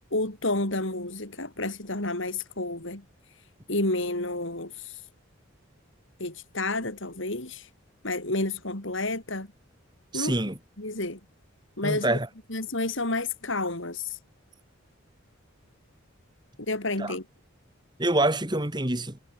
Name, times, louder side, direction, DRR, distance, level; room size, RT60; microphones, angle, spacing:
voice 1, 0.1-3.0 3.7-5.0 6.2-7.7 8.0-9.5 10.1-10.4 10.8-11.2 11.8-12.2 12.5-14.2 16.7-17.2, left 2 dB, 60° left, 3.7 m, -30 dB
voice 2, 10.1-10.6 11.8-12.3 17.0-17.1 18.0-19.2, right 1 dB, 20° right, 2.2 m, -26 dB
head